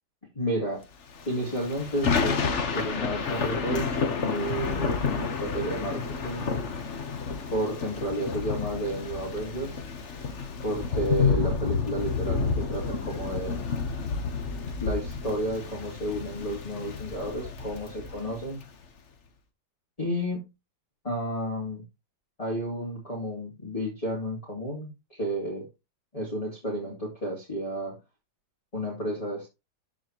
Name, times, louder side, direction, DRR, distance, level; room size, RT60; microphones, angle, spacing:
voice 1, 0.3-0.8 1.3-2.4 2.7-6.4 7.5-9.8 10.6-13.7 14.8-18.6 20.0-20.5 21.0-21.8 22.4-25.6 26.1-27.9 28.7-29.5, equal, 20° left, -3 dB, 2.8 m, -32 dB
Thunder / Rain, 1.2-18.7, left 5 dB, 45° left, 1.2 m, -30 dB
13.5 x 5.0 x 2.9 m, 0.24 s
omnidirectional pair, 2.1 m